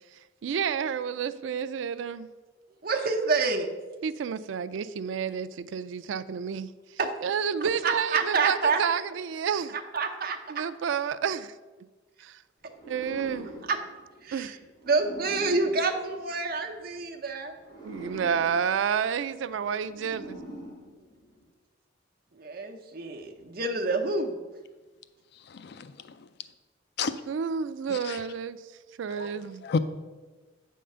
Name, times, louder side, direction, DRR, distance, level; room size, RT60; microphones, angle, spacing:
voice 1, 0.4-2.3 4.0-9.8 10.5-11.5 12.2-12.4 12.9-13.5 14.3-14.6 17.8-20.4 27.3-28.6 29.0-29.6, right 7 dB, 85° right, 14 dB, 0.4 m, -30 dB
voice 2, 2.8-3.7 7.0-7.1 7.8-8.8 9.7-10.6 13.7-13.8 14.2-14.5 14.9-17.5 22.4-24.4, right 4 dB, 55° right, 3 dB, 0.9 m, -28 dB
sound 1, 12.7-16.8 17.5-21.5, right 1 dB, 20° left, 2.3 m, -45 dB
voice 3, 25.5-26.1 27.0-27.1 27.9-28.2 29.1-29.3 29.6-29.8, left 5 dB, 60° left, 12 dB, 0.4 m, -31 dB
8.5 x 3.7 x 6.7 m, 1.2 s
head